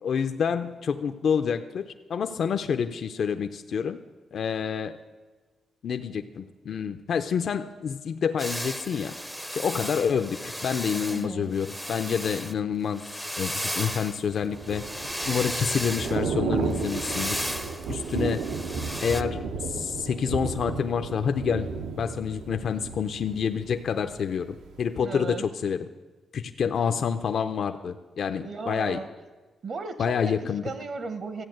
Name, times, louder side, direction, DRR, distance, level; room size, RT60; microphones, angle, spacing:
voice 1, 0.0-4.0 4.3-4.9 5.8-9.1 9.5-14.8 15.3-17.5 17.9-18.4 19.0-21.7 22.0-25.8 26.3-29.0 30.0-30.6, left 7 dB, 55° left, 7 dB, 0.5 m, -28 dB
sound 1, 8.4-12.5 12.9-16.2 16.7-19.2, equal, ahead, 0.5 m, -34 dB
voice 2, 11.1-11.6 18.3-18.4 25.0-25.4 28.4-29.1 29.6-31.4, right 4 dB, 45° right, 11 dB, 0.9 m, -35 dB
Thunder / Rain, 14.2-24.2 24.5-24.8, right 5 dB, 90° right, 1.0 m, -33 dB
14.0 x 8.6 x 7.7 m, 1.3 s
cardioid pair, 145°, 0 cm